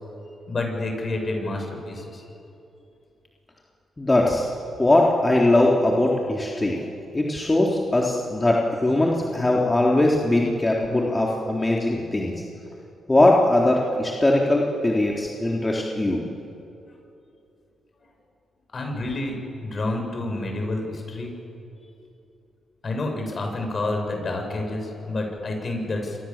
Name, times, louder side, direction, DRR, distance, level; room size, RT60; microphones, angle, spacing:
voice 1, 0.5-2.2 18.7-19.4 19.6-21.3 22.8-26.2, left 2 dB, 50° left, 2 dB, 7.7 m, -29 dB
voice 2, 4.0-4.5 4.8-6.8 7.1-12.3 13.1-16.2, left 1 dB, 25° left, -2 dB, 3.8 m, -20 dB
28.0 x 25.0 x 7.6 m, 2.7 s
supercardioid pair, 50°, 0 cm